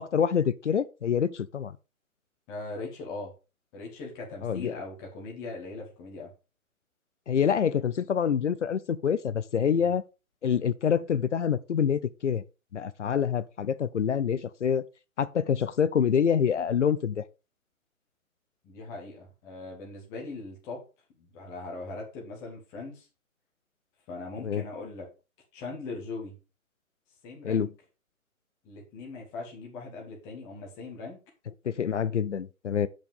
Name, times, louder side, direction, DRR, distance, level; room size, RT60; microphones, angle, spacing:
voice 1, 0.0-1.8 4.4-4.7 7.3-10.0 10.4-12.4 12.7-14.8 15.2-17.2 24.4-24.6 27.4-27.7 31.7-32.9, left 7 dB, 55° left, 0.7 m, -26 dB
voice 2, 2.5-3.3 3.7-6.3 9.5-9.9 18.6-20.8 21.2-23.1 24.1-25.1 25.5-26.4 27.2-27.7 28.6-31.2, left 3 dB, 5° left, 0.9 m, -40 dB
7.5 x 5.0 x 5.1 m
hypercardioid pair, 155°, 43 cm